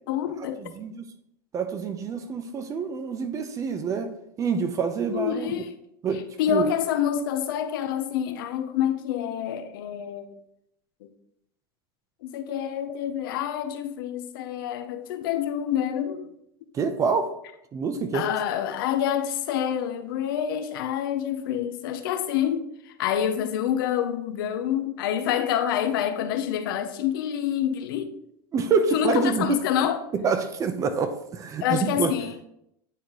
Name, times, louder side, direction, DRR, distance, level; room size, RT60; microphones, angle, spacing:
voice 1, 0.1-0.6 5.1-5.8 6.4-10.4 11.0-11.1 12.2-16.3 18.1-22.6 23.0-28.1 28.9-30.0 31.6-32.5, left 9 dB, 80° left, 0.7 m, -27 dB
voice 2, 0.6-1.1 1.5-4.1 4.4-5.6 6.0-6.2 6.5-6.7 16.7-17.3 17.7-18.3 28.5-29.6 30.1-32.1, right 5 dB, 30° right, 0.6 m, -26 dB
9.1 x 3.8 x 3.0 m
supercardioid pair, 130°, 12 cm